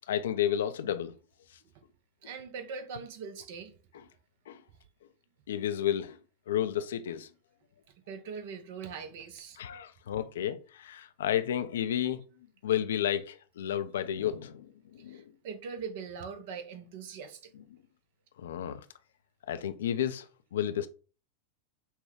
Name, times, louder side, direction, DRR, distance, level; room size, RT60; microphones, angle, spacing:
voice 1, 0.1-1.2 4.5-4.6 5.5-6.2 6.5-7.3 9.6-12.2 12.6-15.3 18.4-18.9 19.5-20.3 20.5-20.9, left 10 dB, 70° left, 0.4 m, -31 dB
voice 2, 2.2-3.7 8.1-9.6 15.0-17.5, right 6 dB, 60° right, 0.7 m, -41 dB
5.6 x 2.2 x 3.4 m
figure-of-eight pair, 90°, 0 cm